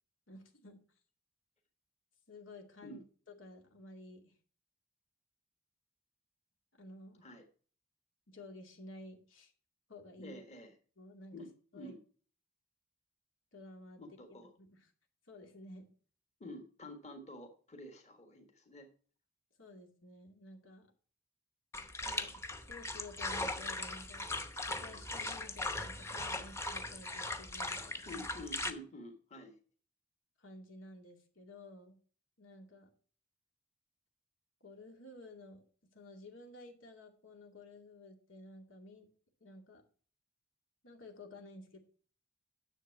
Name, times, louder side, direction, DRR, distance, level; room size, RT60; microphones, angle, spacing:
voice 1, 0.3-0.8 2.3-4.4 6.8-7.3 8.3-9.5 9.9-10.4 11.0-11.5 11.7-11.9 13.5-14.0 14.6-14.9 15.3-15.9 19.6-20.9 22.0-22.4 22.7-28.2 30.4-32.0 32.4-32.9 34.6-35.6 35.9-39.1 39.4-39.8 40.8-41.8, left 2 dB, 85° left, 3 dB, 2.4 m, -53 dB
voice 2, 10.2-10.7 11.3-12.0 14.0-14.5 16.4-18.9 28.1-29.6, left 1 dB, 35° left, 4 dB, 1.6 m, -49 dB
sound 1, 21.7-28.7, left 2 dB, 15° left, 0.8 m, -39 dB
10.0 x 7.3 x 4.6 m, 0.42 s
head